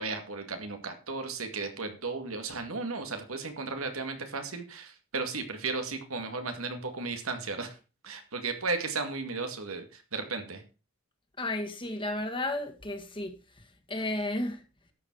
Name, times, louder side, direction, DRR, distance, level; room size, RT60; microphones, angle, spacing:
voice 1, 0.0-7.8 8.0-10.6, right 3 dB, 90° right, 2.3 m, -35 dB
voice 2, 11.4-13.3 13.9-14.6, left 1 dB, 25° left, 1.9 m, -32 dB
12.5 x 7.5 x 4.7 m
head